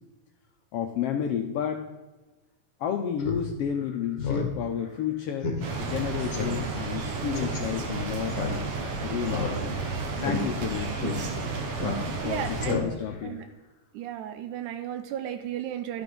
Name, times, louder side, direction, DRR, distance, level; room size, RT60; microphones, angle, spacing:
voice 1, 0.7-1.8 2.8-5.5 5.8-8.7 9.0-9.9 10.2-11.1 12.2-13.4, left 8 dB, 85° left, 4 dB, 1.3 m, -31 dB
Speech synthesizer, 3.2-3.4 3.8-3.9 4.2-4.5 4.8-4.9 5.4-5.6 5.9-6.0 6.3-6.6 7.3-7.6 8.3-8.9 9.3-9.9 10.2-10.4 11.0-11.1 11.8-12.3 12.6-13.1, left 4 dB, 50° left, 1.6 m, -30 dB
sound 1, 5.6-12.8, right 4 dB, 60° right, 2.0 m, -32 dB
voice 2, 12.2-12.8 13.2-13.5 13.9-16.0, right 10 dB, 90° right, 8 dB, 2.1 m, -34 dB
12.0 x 6.0 x 5.2 m, 1.1 s
omnidirectional pair, 3.5 m